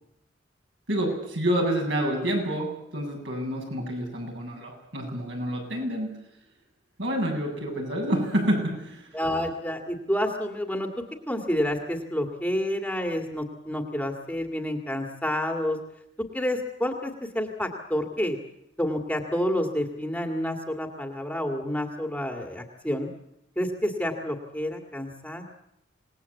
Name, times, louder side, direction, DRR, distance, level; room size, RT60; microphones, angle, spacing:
voice 1, 0.9-6.2 7.0-9.2, equal, 70° right, 0 dB, 7.6 m, -28 dB
voice 2, 9.1-10.9 11.3-15.8 16.3-18.4 18.8-23.1 23.6-25.4, left 1 dB, 5° left, 3 dB, 2.1 m, -29 dB
27.0 x 18.5 x 8.3 m, 0.81 s
head